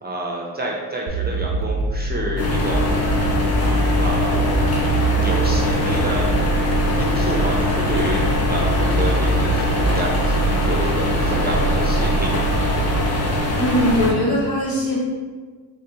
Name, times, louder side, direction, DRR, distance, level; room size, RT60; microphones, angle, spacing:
voice 1, 0.0-3.0 4.0-4.6 5.2-6.3 7.0-12.4, right 2 dB, 25° right, -2 dB, 0.5 m, -28 dB
sound 1, 1.1-13.0, right 2 dB, 85° right, 0.5 m, -24 dB
sound 2, 2.4-14.1, left 1 dB, 35° left, 0.8 m, -22 dB
voice 2, 13.6-15.0, left 1 dB, 55° left, -5 dB, 1.3 m, -20 dB
4.0 x 2.2 x 2.7 m, 1.5 s
cardioid pair, 55°, 43 cm